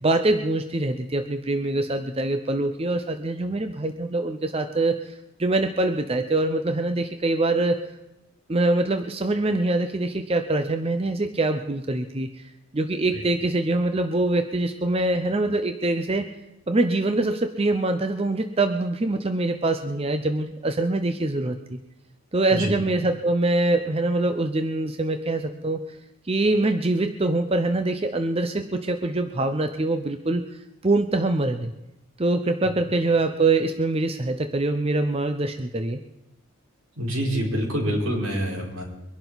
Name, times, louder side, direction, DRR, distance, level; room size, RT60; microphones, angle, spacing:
voice 1, 0.0-5.1 5.4-7.8 8.5-12.3 12.7-16.3 16.7-21.8 22.3-25.8 26.3-30.4 30.8-31.7 32.2-36.0, right 2 dB, 25° right, 7 dB, 0.6 m, -24 dB
voice 2, 37.0-38.8, equal, 80° right, -2 dB, 4.5 m, -26 dB
23.5 x 11.5 x 4.0 m, 0.93 s
head